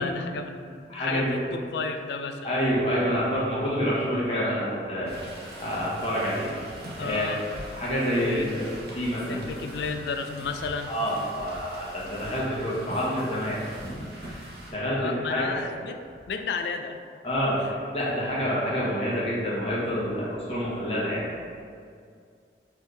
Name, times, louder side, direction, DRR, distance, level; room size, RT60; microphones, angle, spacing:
voice 1, 0.0-2.5 7.0-7.4 8.2-8.5 9.3-10.9 15.0-17.0 17.6-17.7, left 5 dB, 75° left, 7 dB, 0.3 m, -33 dB
voice 2, 0.9-1.4 2.4-5.2 5.6-6.5 7.0-7.3 7.7-8.7 8.9-9.4 10.9-13.9 14.2-15.6 17.2-21.3, equal, 35° left, -7 dB, 1.1 m, -28 dB
sound 1, 5.0-14.7, right 1 dB, 60° right, 0.8 m, -43 dB
4.5 x 3.4 x 3.2 m, 2.2 s
head